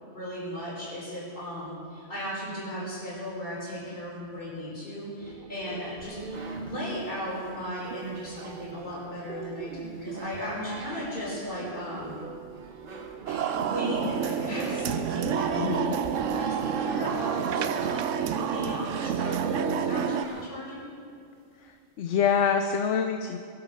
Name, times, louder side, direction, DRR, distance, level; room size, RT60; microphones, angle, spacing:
voice 1, 0.0-12.2 13.2-20.9, equal, 45° left, -8 dB, 5.1 m, -36 dB
sound 1, 5.2-17.2, right 6 dB, 55° right, 0.6 m, -43 dB
sound 2, 6.0-9.4 9.8-10.9 11.4-12.4 12.7-14.0 14.3-18.4 18.8-20.8, right 3 dB, 70° right, 1.7 m, -46 dB
sound 3, 13.3-20.2, right 8 dB, 85° right, 1.0 m, -29 dB
voice 2, 15.6-15.9 22.0-23.4, left 7 dB, 80° left, 7 dB, 1.0 m, -25 dB
21.0 x 8.9 x 6.3 m, 2.4 s
omnidirectional pair, 1.2 m